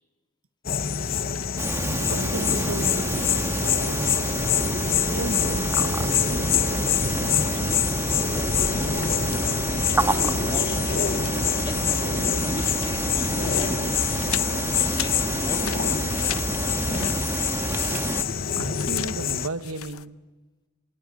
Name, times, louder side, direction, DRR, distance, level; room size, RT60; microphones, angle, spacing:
sound 1, 0.6-19.5, left 7 dB, 45° left, 0.9 m, -26 dB
sound 2, 0.8-1.9 3.3-4.5 5.9-7.0 7.3-7.4 8.8-9.9 10.4-10.5 10.8-11.7 11.9-20.1, left 11 dB, 80° left, 0.7 m, -39 dB
sound 3, 1.6-18.2, right 2 dB, 10° right, 1.3 m, -28 dB
voice 1, 1.9-4.3 5.1-6.4 6.8-7.9 18.6-20.2, right 2 dB, 85° right, 11 dB, 1.2 m, -35 dB
voice 2, 9.5-11.0 11.6-11.8 12.5-13.9 14.7-15.9, left 2 dB, 20° left, 4 dB, 1.9 m, -38 dB
28.5 x 19.5 x 9.3 m, 1.3 s
head